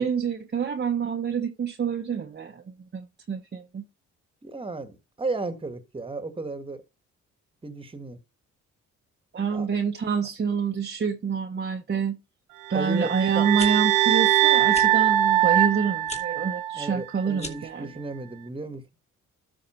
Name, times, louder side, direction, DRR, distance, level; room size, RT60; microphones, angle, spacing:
voice 1, 0.0-3.9 9.3-12.2 12.7-17.9, right 6 dB, 35° right, 1.1 m, -27 dB
voice 2, 4.4-6.8 7.6-8.2 9.5-9.7 12.7-13.5 16.8-18.8, right 3 dB, 20° right, 1.6 m, -34 dB
sound 1, 12.7-17.0, right 12 dB, 90° right, 0.8 m, -22 dB
sound 2, 13.4-13.7 14.7-14.9 16.0-16.2 17.3-17.7, left 2 dB, 20° left, 2.5 m, -37 dB
13.0 x 4.9 x 4.4 m
cardioid pair, 90°, 30 cm